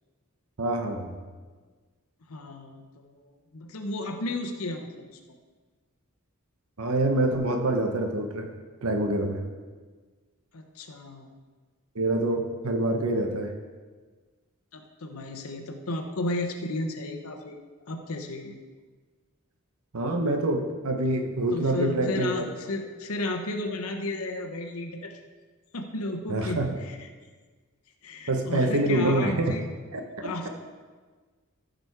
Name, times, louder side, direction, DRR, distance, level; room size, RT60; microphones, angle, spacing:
voice 1, 0.6-1.2 6.8-8.5 8.8-9.4 11.9-13.5 19.9-22.4 26.3-26.7 28.3-29.5 29.9-30.0, right 1 dB, 80° right, 4 dB, 1.0 m, -26 dB
voice 2, 2.3-5.2 10.5-11.3 14.7-17.6 17.9-18.6 21.5-25.2 25.7-27.1 28.0-29.7 30.2-30.5, left 2 dB, 80° left, 5 dB, 0.9 m, -33 dB
14.5 x 5.1 x 4.7 m, 1.4 s
head